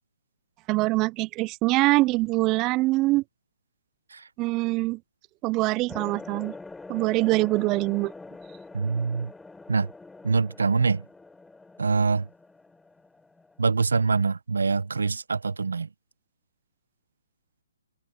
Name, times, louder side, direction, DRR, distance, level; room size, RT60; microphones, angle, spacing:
voice 1, 0.7-3.2 4.4-5.0 5.4-6.6 6.9-8.1, right 21 dB, 20° right, 0.3 m, -24 dB
sound 1, 5.9-13.8, left 3 dB, 5° left, 3.4 m, -44 dB
voice 2, 8.7-9.3 9.7-9.9 10.2-11.0 11.8-12.3 13.6-15.9, right 4 dB, 90° right, 0.8 m, -24 dB
hypercardioid pair, 160°, 0 cm